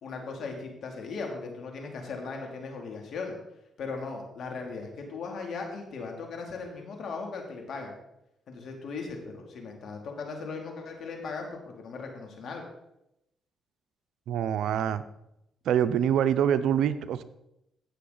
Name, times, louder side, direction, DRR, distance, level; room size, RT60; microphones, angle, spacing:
voice 1, 0.0-3.4 3.8-7.9 8.5-12.6, left 4 dB, 65° left, 2 dB, 2.7 m, -38 dB
voice 2, 14.3-15.0 15.7-17.2, right 9 dB, 80° right, 13 dB, 0.6 m, -25 dB
16.0 x 6.7 x 4.0 m, 0.84 s
cardioid pair, 80°, 0 cm